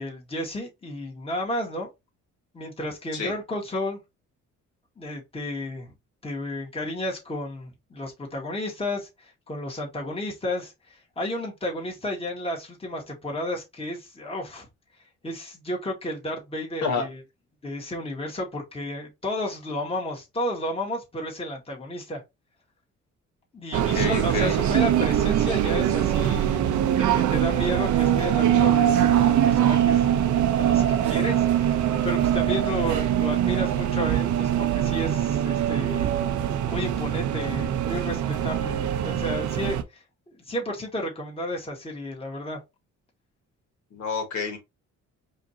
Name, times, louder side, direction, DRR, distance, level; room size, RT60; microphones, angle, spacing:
voice 1, 0.0-1.9 2.5-4.0 5.0-5.9 6.2-14.7 15.2-17.2 17.6-22.2 23.5-26.6 26.9-30.0 30.3-36.1 36.4-40.0 40.5-42.6, left 1 dB, 20° left, 1.7 m, -32 dB
voice 2, 23.7-24.6 43.9-44.6, left 5 dB, 65° left, 1.7 m, -29 dB
sound 1, 23.7-39.8, right 10 dB, 75° right, 0.7 m, -23 dB
4.9 x 2.7 x 2.8 m
cardioid pair, 90°, 30 cm